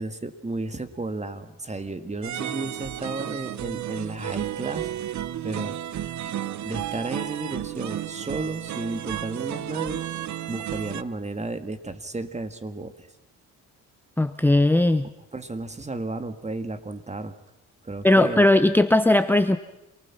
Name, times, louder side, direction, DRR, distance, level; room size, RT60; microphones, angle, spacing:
voice 1, 0.0-4.9 5.4-5.8 6.3-6.4 6.6-10.0 10.5-13.1 15.3-17.4 17.8-18.4, right 2 dB, 20° right, 9 dB, 1.9 m, -33 dB
sound 1, 2.2-11.0, right 11 dB, 60° right, 0.9 m, -32 dB
voice 2, 14.2-15.1 18.0-19.6, left 1 dB, 5° left, 10 dB, 0.8 m, -18 dB
27.5 x 19.5 x 6.0 m, 0.96 s
cardioid pair, 70°, 32 cm